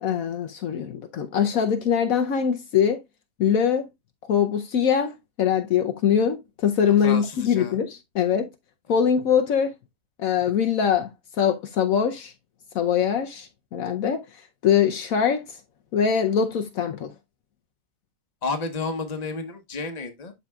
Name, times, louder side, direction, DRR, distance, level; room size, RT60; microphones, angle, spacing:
voice 1, 0.0-3.0 3.4-3.9 4.3-8.5 8.9-9.7 10.2-11.1 11.4-12.3 12.7-14.2 14.6-15.5 15.9-17.1, left 8 dB, 70° left, 1.1 m, -22 dB
voice 2, 7.0-7.7 18.4-20.3, left 3 dB, 30° left, 1.1 m, -31 dB
12.0 x 4.1 x 2.3 m
omnidirectional pair, 1.6 m